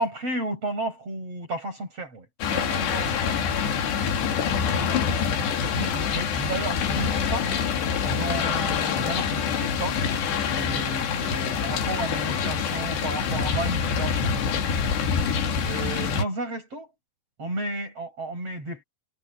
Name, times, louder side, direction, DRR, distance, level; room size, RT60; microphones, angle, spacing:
voice 1, 0.0-3.6 4.0-4.1 4.8-5.0 5.7-7.5 8.0-10.0 10.5-14.8 15.6-16.9 17.4-18.8, right 2 dB, 35° right, 8.2 m, -33 dB
sound 1, 2.4-16.2, left 6 dB, 90° left, 4.8 m, -26 dB
omnidirectional pair, 4.7 m